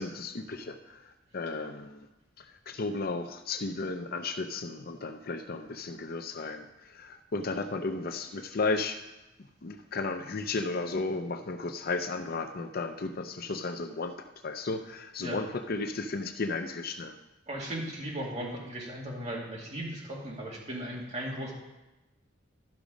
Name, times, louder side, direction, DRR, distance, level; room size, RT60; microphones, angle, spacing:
voice 1, 0.0-2.1 2.4-9.0 9.6-14.1 14.4-17.2, left 3 dB, 55° left, 7 dB, 0.6 m, -34 dB
voice 2, 17.5-21.5, right 1 dB, 35° right, -3 dB, 2.5 m, -37 dB
12.0 x 6.2 x 5.1 m, 1.0 s
head